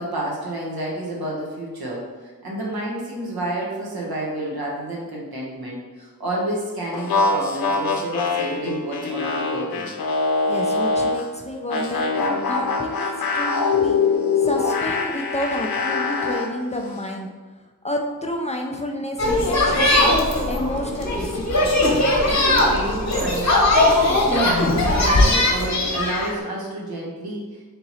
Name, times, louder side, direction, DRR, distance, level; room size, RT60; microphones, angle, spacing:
voice 1, 0.0-9.9 13.7-13.9 22.2-27.7, right 1 dB, 85° right, -3 dB, 1.2 m, -30 dB
sound 1, 6.9-11.3 11.7-16.5, left 4 dB, 80° left, 0.6 m, -23 dB
voice 2, 10.5-14.0 14.4-17.3 17.8-21.9, left 1 dB, 20° left, 1 dB, 0.4 m, -30 dB
sound 2, 19.2-26.3, left 1 dB, 50° left, 1.0 m, -19 dB
3.7 x 2.9 x 4.1 m, 1.3 s
wide cardioid pair, 105°, 36 cm